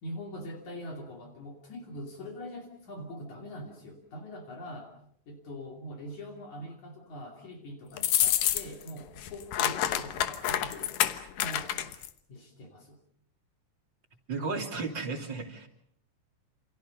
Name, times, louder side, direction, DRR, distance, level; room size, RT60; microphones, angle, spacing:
voice 1, 0.0-4.9 5.3-10.9 11.3-11.9 12.3-13.0, equal, 65° left, 2 dB, 4.1 m, -43 dB
sound 1, 8.0-8.9 9.2-12.1, left 11 dB, 85° left, 2.8 m, -28 dB
voice 2, 14.3-15.7, right 4 dB, 35° right, 3 dB, 3.4 m, -34 dB
28.5 x 28.5 x 5.3 m, 0.67 s
omnidirectional pair, 3.7 m